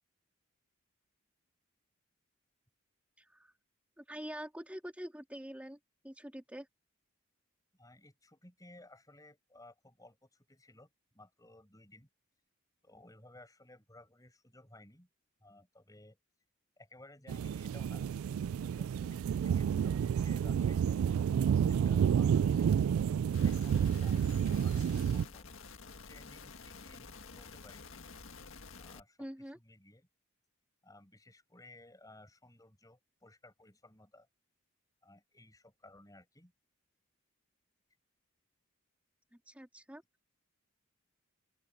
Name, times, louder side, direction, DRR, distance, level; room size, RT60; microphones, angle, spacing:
voice 1, 3.2-3.5 4.0-5.8 6.0-6.7 29.2-29.6 39.4-40.0, equal, 5° right, 2.8 m, -45 dB
voice 2, 7.7-12.1 12.8-15.1 15.4-16.2 16.8-18.1 18.4-21.0 21.6-22.8 23.4-24.2 24.5-25.5 25.8-27.9 28.8-30.1 30.8-34.3 35.0-36.5, left 2 dB, 15° left, 7.7 m, -58 dB
sound 1, 17.3-25.2, right 8 dB, 75° right, 0.3 m, -30 dB
sound 2, 23.3-29.0, left 4 dB, 65° left, 1.7 m, -50 dB
open air
head